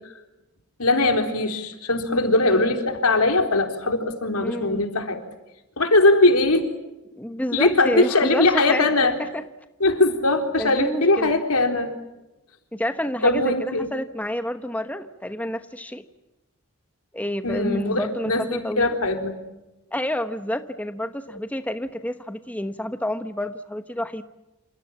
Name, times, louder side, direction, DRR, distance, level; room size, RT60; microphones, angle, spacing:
voice 1, 0.8-5.2 5.8-6.7 7.5-9.2 9.8-11.9 13.2-13.9 17.4-19.4, left 2 dB, 85° left, 5 dB, 4.1 m, -20 dB
voice 2, 4.4-4.8 7.2-8.9 9.2-9.4 10.6-11.4 12.7-16.0 17.1-18.9 19.9-24.2, left 1 dB, 5° left, 8 dB, 1.1 m, -29 dB
28.5 x 28.5 x 7.4 m, 0.99 s
head